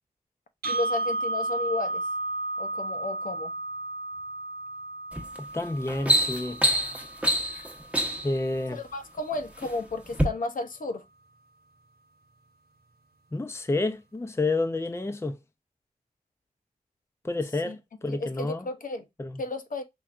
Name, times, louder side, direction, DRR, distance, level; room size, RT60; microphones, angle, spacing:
voice 1, 0.6-2.0 2.6-3.6 8.7-11.0 17.6-17.8 18.1-19.1 19.4-19.8, left 2 dB, 60° left, 0.7 m, -33 dB
sound 1, 0.6-8.7, right 2 dB, 90° right, 0.8 m, -34 dB
sound 2, 5.1-5.4 5.7-8.4 9.2-9.7 10.1-10.3, equal, 10° right, 0.9 m, -25 dB
voice 2, 5.4-6.6 8.2-8.8 13.3-15.4 17.2-17.8 18.0-18.7 19.2-19.4, left 2 dB, 15° left, 0.5 m, -29 dB
4.4 x 3.1 x 2.4 m
wide cardioid pair, 65°, 15 cm